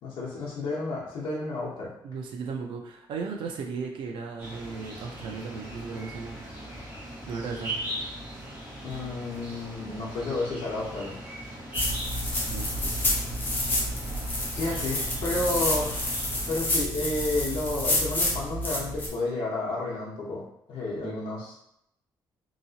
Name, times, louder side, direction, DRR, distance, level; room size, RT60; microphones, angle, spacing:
voice 1, 0.0-1.9 8.8-11.2 14.6-16.1 16.4-20.4 20.7-21.5, left 2 dB, 85° left, -5 dB, 0.9 m, -31 dB
voice 2, 2.0-6.4 7.3-7.7 12.5-13.0 21.0-21.2, right 5 dB, 85° right, 2 dB, 0.6 m, -36 dB
sound 1, 4.4-16.6, right 1 dB, 25° right, 1.2 m, -39 dB
sound 2, 11.7-19.1, left 1 dB, 25° left, 0.7 m, -29 dB
2.9 x 2.9 x 2.7 m, 0.76 s
cardioid pair, 165°, 8 cm